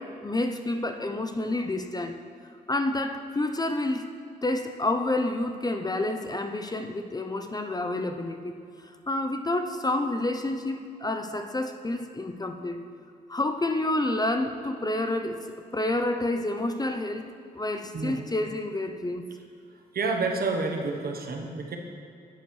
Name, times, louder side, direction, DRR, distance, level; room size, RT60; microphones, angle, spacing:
voice 1, 0.0-2.2 2.7-4.1 4.4-8.6 9.1-12.8 13.3-15.4 15.7-19.3, left 2 dB, 20° left, 6 dB, 0.5 m, -29 dB
voice 2, 19.9-21.8, right 3 dB, 60° right, 3 dB, 1.0 m, -29 dB
9.3 x 6.6 x 3.2 m, 2.5 s
cardioid pair, 55°, 18 cm